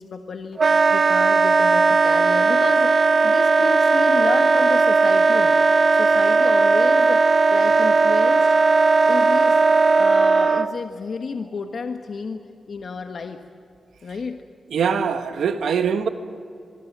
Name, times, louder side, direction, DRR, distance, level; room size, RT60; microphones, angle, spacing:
voice 1, 0.0-3.0 3.2-5.7 5.9-8.5 9.1-9.6 10.0-13.4 14.0-14.4, left 4 dB, 60° left, 5 dB, 1.4 m, -31 dB
Wind instrument woodwind instrument, 0.6-10.7, right 4 dB, 50° right, 0.8 m, -17 dB
sound 1, 2.1-11.8, equal, ahead, 6.4 m, -46 dB
voice 2, 14.7-16.1, right 6 dB, 85° right, 7 dB, 1.5 m, -22 dB
24.5 x 22.0 x 7.4 m, 2.3 s
cardioid pair, 75°, 0 cm